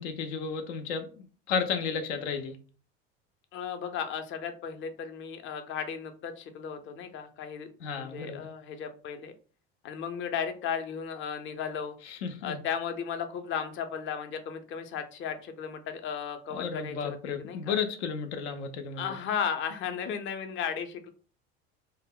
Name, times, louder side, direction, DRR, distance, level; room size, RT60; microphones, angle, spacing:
voice 1, 0.0-2.6 7.8-8.4 12.0-12.6 16.5-19.1, left 6 dB, 85° left, 0.5 m, -33 dB
voice 2, 3.5-7.7 8.0-9.3 9.8-12.0 12.4-17.8 19.0-21.1, left 7 dB, 40° left, 0.5 m, -35 dB
2.1 x 2.0 x 3.5 m
hypercardioid pair, 85°, 32 cm